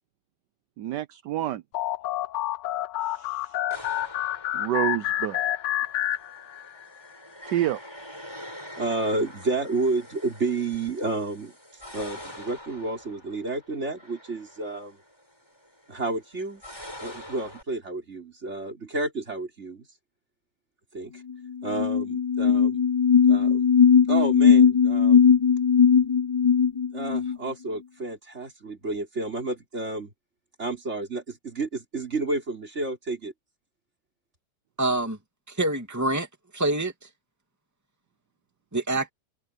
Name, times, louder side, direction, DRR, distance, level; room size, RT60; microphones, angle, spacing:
voice 1, 0.8-1.6 3.0-3.5 4.5-5.4 7.5-7.8, right 12 dB, 75° right, 1.3 m, -28 dB
sound 1, 1.7-6.8, left 13 dB, 80° left, 1.3 m, -29 dB
sound 2, 3.7-17.6, equal, 15° left, 7.0 m, -45 dB
voice 2, 8.8-11.5 11.9-15.0 15.9-16.6 17.0-19.8 20.9-21.2 21.6-22.8 23.3-23.7 24.1-25.3 26.9-30.1 30.6-33.3, right 2 dB, 40° right, 4.3 m, -30 dB
sound 3, 21.3-21.4 21.6-27.4, left 6 dB, 35° left, 0.5 m, -19 dB
voice 3, 34.8-35.2 35.5-36.3 36.5-36.9 38.7-39.1, right 2 dB, 10° right, 2.6 m, -26 dB
omnidirectional pair, 1.9 m